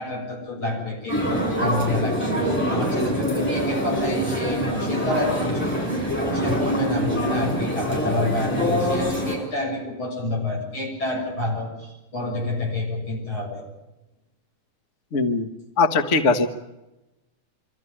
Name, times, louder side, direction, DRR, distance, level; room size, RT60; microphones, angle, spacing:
voice 1, 0.0-13.7, left 1 dB, 40° left, 0 dB, 7.8 m, -28 dB
sound 1, 1.1-9.4, equal, 5° left, 7.5 m, -25 dB
voice 2, 15.1-15.5 15.8-16.5, left 4 dB, 65° left, 8 dB, 0.7 m, -20 dB
25.5 x 14.5 x 9.9 m, 1.0 s
omnidirectional pair, 3.5 m